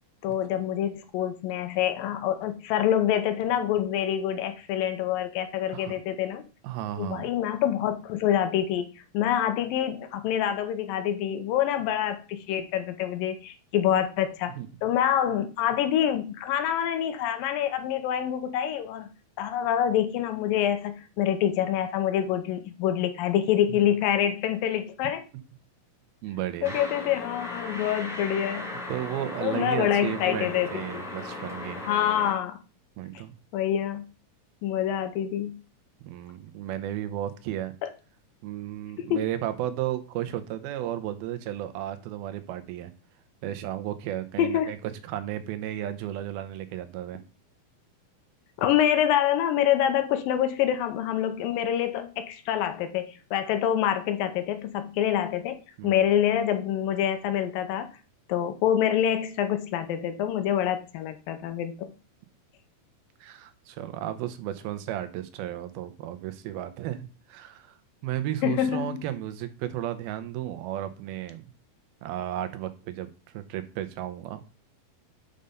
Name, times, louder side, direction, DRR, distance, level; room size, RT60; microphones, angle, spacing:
voice 1, 0.2-6.4 7.0-14.5 14.8-19.1 19.4-25.2 26.6-28.7 29.4-30.7 31.9-32.6 33.5-34.1 34.6-35.6 37.8-37.9 39.1-39.2 44.4-44.7 48.6-55.6 55.8-57.9 58.3-61.9 68.4-69.1, left 10 dB, 75° left, 9 dB, 2.4 m, -26 dB
voice 2, 6.6-7.3 14.6-14.7 23.7-23.8 26.2-26.8 28.9-31.8 33.0-33.3 36.1-37.7 38.4-42.9 43.4-44.8 45.0-47.2 55.8-56.0 63.2-67.8 68.0-71.5 72.0-74.4, right 12 dB, 85° right, 10 dB, 2.7 m, -34 dB
sound 1, 26.6-32.3, left 2 dB, ahead, 0.8 m, -37 dB
6.7 x 5.6 x 5.2 m, 0.34 s
omnidirectional pair, 4.3 m